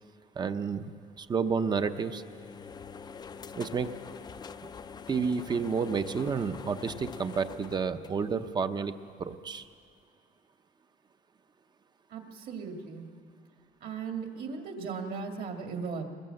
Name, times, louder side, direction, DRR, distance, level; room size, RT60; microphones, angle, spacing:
voice 1, 0.4-0.9 1.2-2.2 3.5-3.9 5.1-9.7, right 5 dB, 25° right, 10 dB, 0.7 m, -30 dB
sound 1, 1.5-8.8, left 6 dB, 25° left, 0.5 m, -45 dB
voice 2, 12.1-13.1 13.8-16.0, right 5 dB, 55° right, 3 dB, 2.2 m, -37 dB
22.5 x 20.0 x 7.8 m, 2.2 s
cardioid pair, 175°, 17 cm